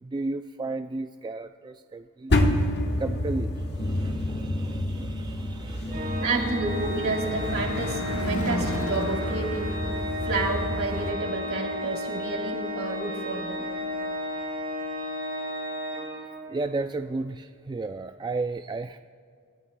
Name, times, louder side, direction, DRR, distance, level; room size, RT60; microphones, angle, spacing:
voice 1, 0.0-2.4 3.0-6.4 16.5-19.0, right 3 dB, 20° right, 7 dB, 0.3 m, -34 dB
sound 1, 2.3-11.1, left 1 dB, 50° left, 1.3 m, -29 dB
Car passing by / Truck / Engine, 4.6-14.6, left 2 dB, 70° left, 0.8 m, -41 dB
Organ, 5.9-16.7, left 1 dB, 45° right, 2.6 m, -33 dB
voice 2, 6.2-9.8 10.2-13.6, right 2 dB, 65° right, -1 dB, 3.2 m, -30 dB
28.0 x 15.0 x 2.3 m, 2.2 s
head